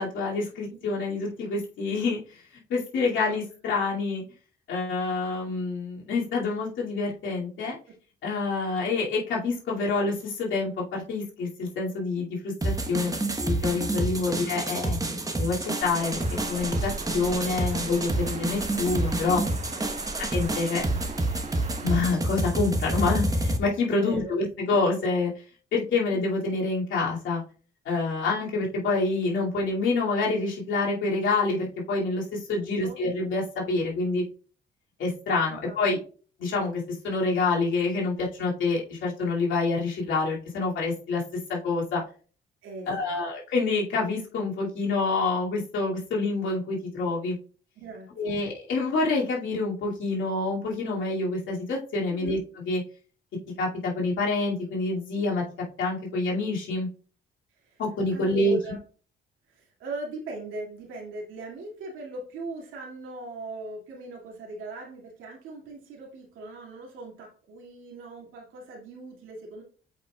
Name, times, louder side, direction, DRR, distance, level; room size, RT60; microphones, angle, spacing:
voice 1, 0.0-2.2 2.7-4.2 4.7-7.8 8.2-13.2 13.4-15.0 15.4-19.4 20.3-20.8 21.8-25.3 25.7-27.4 27.9-34.2 35.0-36.0 36.4-41.2 41.5-42.0 42.9-47.4 48.2-52.4 52.6-52.8 53.6-55.4 55.8-56.9 57.8-58.8, left 3 dB, 75° left, -4 dB, 2.5 m, -27 dB
sound 1, 12.6-23.6, right 1 dB, 15° right, 1.1 m, -28 dB
Water, 15.8-22.0, right 4 dB, 35° right, 0.8 m, -40 dB
voice 2, 19.7-20.2 23.9-24.3 32.7-33.0 35.5-36.0 42.6-43.2 47.8-48.4 52.1-52.4 57.6-57.8 58.1-58.8 59.5-69.6, right 2 dB, 90° right, -2 dB, 2.3 m, -39 dB
7.7 x 5.4 x 2.3 m, 0.40 s
cardioid pair, 90°, 20 cm